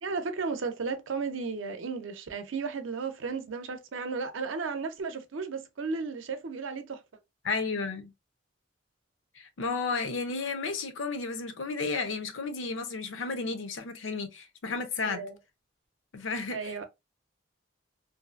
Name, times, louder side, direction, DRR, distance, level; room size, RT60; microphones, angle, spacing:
voice 1, 0.0-7.0 15.0-15.4 16.5-16.8, right 4 dB, 85° right, 0.6 m, -34 dB
voice 2, 7.4-8.1 9.4-15.2 16.1-16.8, left 4 dB, 80° left, 0.6 m, -33 dB
2.6 x 2.4 x 2.3 m
head